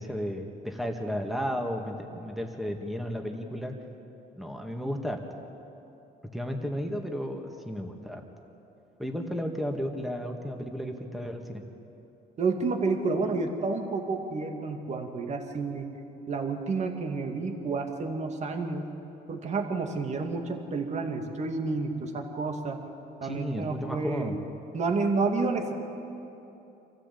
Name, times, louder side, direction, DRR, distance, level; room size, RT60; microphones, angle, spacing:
voice 1, 0.0-3.8 4.4-5.2 6.3-8.2 9.0-11.6 23.2-24.4, equal, ahead, 3 dB, 2.1 m, -33 dB
voice 2, 12.4-15.9 16.3-18.9 19.3-22.8 23.2-24.3 24.7-25.7, right 4 dB, 40° right, 4 dB, 2.4 m, -30 dB
26.5 x 15.0 x 8.5 m, 3.0 s
cardioid pair, 110°, 17 cm